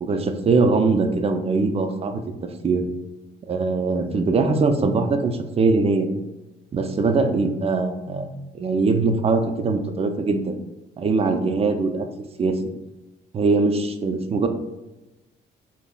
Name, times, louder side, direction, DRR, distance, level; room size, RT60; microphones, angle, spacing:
voice 1, 0.0-2.2 2.6-2.8 3.5-6.1 6.7-10.6 11.0-12.1 12.4-12.6 13.3-14.5, right 3 dB, 30° right, 6 dB, 0.3 m, -21 dB
2.1 x 2.0 x 3.7 m, 1.0 s
cardioid pair, 90°, 20 cm